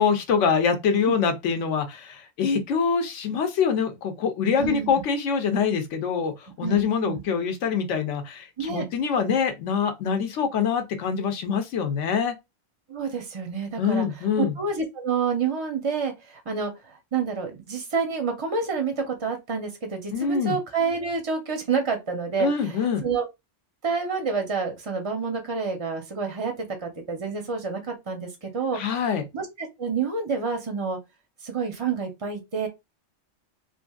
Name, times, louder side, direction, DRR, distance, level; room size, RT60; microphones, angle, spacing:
voice 1, 0.0-12.4 13.8-14.5 20.1-20.6 22.4-23.0 28.7-29.2, left 6 dB, 80° left, 1.0 m, -24 dB
voice 2, 4.6-4.9 6.6-7.2 8.6-8.9 12.9-23.3 23.8-26.5 26.8-28.8 29.3-31.0 31.4-32.7, right 5 dB, 40° right, 0.4 m, -28 dB
3.1 x 2.5 x 2.3 m
omnidirectional pair, 1.2 m